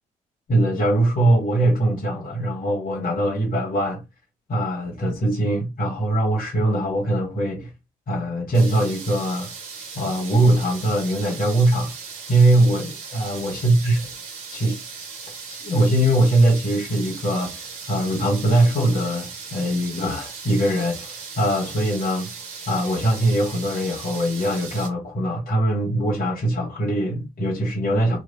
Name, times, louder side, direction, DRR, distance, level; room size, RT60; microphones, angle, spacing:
voice 1, 0.5-4.0 4.5-7.7 8.1-9.5 10.0-11.9 12.3-14.0 14.5-14.8 15.5-22.3 22.7-28.2, right 1 dB, 50° left, 1.9 m, -21 dB
sound 1, 8.5-24.9, right 5 dB, 80° right, 1.2 m, -37 dB
4.0 x 3.1 x 4.0 m
hypercardioid pair, 45°, 18 cm